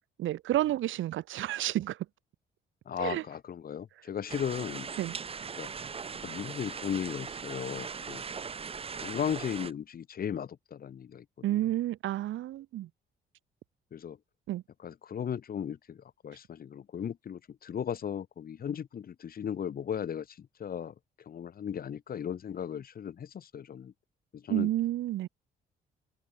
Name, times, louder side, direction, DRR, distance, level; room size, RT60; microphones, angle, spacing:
voice 1, 0.2-2.0 3.0-3.2 5.0-5.1 11.4-12.9 14.5-14.6 24.5-25.3, right 14 dB, 80° right, 1.2 m, -30 dB
voice 2, 2.9-4.9 5.5-5.7 6.2-8.2 9.0-11.6 13.9-14.2 14.8-20.9 21.3-23.9 24.3-24.7, left 8 dB, 50° left, 1.0 m, -36 dB
sound 1, 4.3-9.7, right 6 dB, 30° right, 0.7 m, -40 dB
cardioid pair, 90°, 20 cm